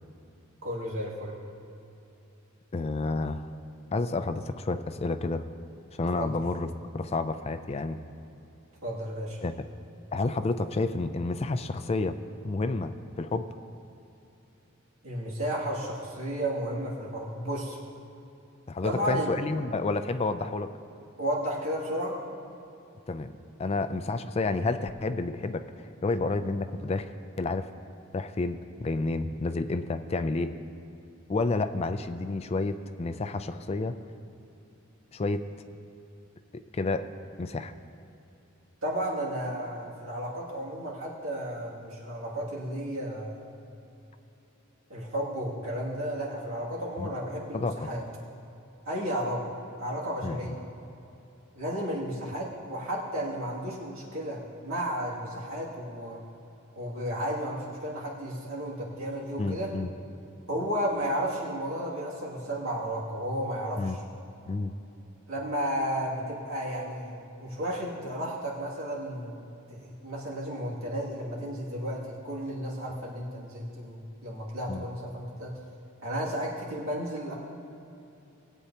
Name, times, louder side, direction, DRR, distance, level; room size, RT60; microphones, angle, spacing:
voice 1, 0.6-1.3 6.1-6.3 8.8-9.4 15.0-17.8 18.8-19.3 21.2-22.2 38.8-43.6 44.9-48.0 48.9-49.4 49.8-50.6 51.6-56.2 56.8-59.7 60.5-64.0 65.3-67.1 67.4-69.4 69.7-75.5 76.0-77.3, equal, 80° right, -5 dB, 2.4 m, -33 dB
voice 2, 2.7-3.5 3.9-5.5 5.9-8.0 9.4-9.5 10.1-12.2 12.4-13.5 18.7-20.7 23.1-23.3 23.6-27.1 27.4-27.7 28.1-30.5 31.3-34.0 35.1-35.5 36.5-37.1 37.4-37.7 47.0-47.1 47.5-47.9 50.2-50.6 59.4-59.9 63.8-64.0 64.5-64.7 74.7-74.9, left 3 dB, 30° left, 10 dB, 0.4 m, -30 dB
19.5 x 8.3 x 2.9 m, 2.9 s
head